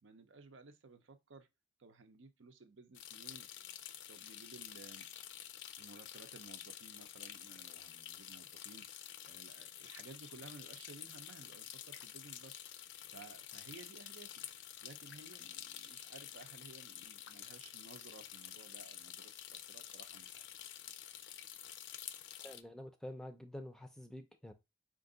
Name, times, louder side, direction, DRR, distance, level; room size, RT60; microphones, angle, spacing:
voice 1, 0.0-1.5 1.8-3.5 4.1-5.1 5.8-14.5 14.8-20.5, right 3 dB, 85° right, 0.7 m, -57 dB
sound 1, 2.9-22.6, left 11 dB, 70° left, 0.4 m, -50 dB
voice 2, 22.4-24.5, left 1 dB, 5° left, 0.4 m, -48 dB
4.5 x 2.5 x 3.8 m
head